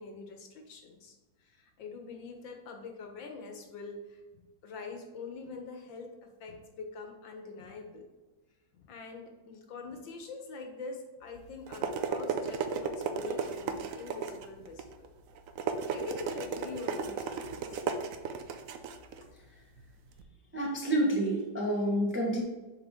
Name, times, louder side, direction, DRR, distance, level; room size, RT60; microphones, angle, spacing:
voice 1, 0.0-8.1 8.7-15.1 15.9-17.8, left 4 dB, 75° left, 4 dB, 1.7 m, -44 dB
sound 1, 11.3-20.2, right 6 dB, 80° right, 0.7 m, -36 dB
voice 2, 20.5-22.4, right 1 dB, 10° right, -2 dB, 0.9 m, -28 dB
7.3 x 4.4 x 3.6 m, 1.2 s
omnidirectional pair, 2.1 m